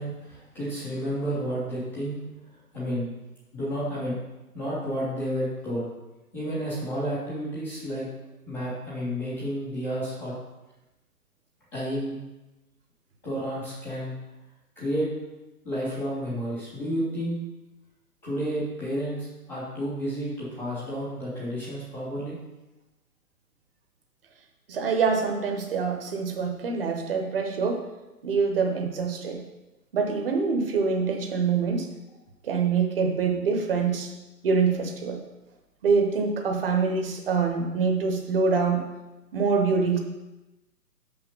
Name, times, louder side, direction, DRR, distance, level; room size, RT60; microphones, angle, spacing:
voice 1, 0.0-2.2 2.7-3.1 3.5-4.1 4.5-5.9 6.3-8.0 8.5-10.3 11.7-12.2 13.2-14.1 14.8-15.1 15.6-17.4 18.2-22.3, equal, 5° left, -17 dB, 0.5 m, -31 dB
voice 2, 24.7-27.8 28.2-29.4 29.9-31.9 32.4-34.1 34.4-35.2 35.8-38.8 39.3-40.0, right 5 dB, 35° right, 4 dB, 1.1 m, -25 dB
6.2 x 5.8 x 5.4 m, 1.0 s
figure-of-eight pair, 130°, 47 cm